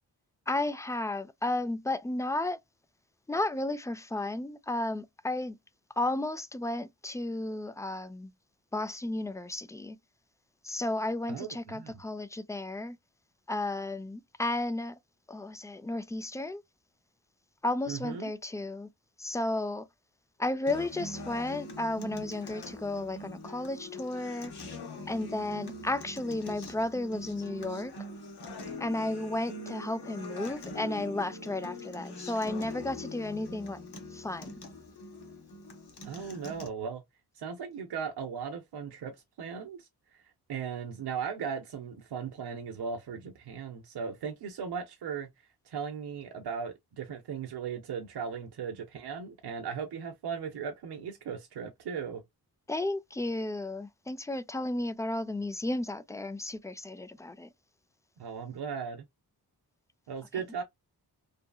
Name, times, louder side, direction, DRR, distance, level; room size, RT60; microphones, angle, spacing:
voice 1, 0.5-2.6 3.3-5.6 6.0-8.3 8.7-10.0 10.6-13.0 13.5-14.9 15.3-16.6 17.6-18.9 19.2-19.9 20.4-24.5 25.1-27.9 28.8-33.8 34.1-34.6 52.7-57.5, left 2 dB, 10° left, 0.3 m, -33 dB
voice 2, 11.3-12.0 17.9-18.3 36.0-37.0 37.4-39.9 40.1-40.2 40.5-45.3 45.7-52.2 58.2-59.0 60.1-60.6, right 6 dB, 80° right, 0.7 m, -37 dB
Acoustic guitar, 20.7-36.7, left 2 dB, 75° left, 0.9 m, -43 dB
2.7 x 2.6 x 2.2 m
cardioid pair, 65°, 39 cm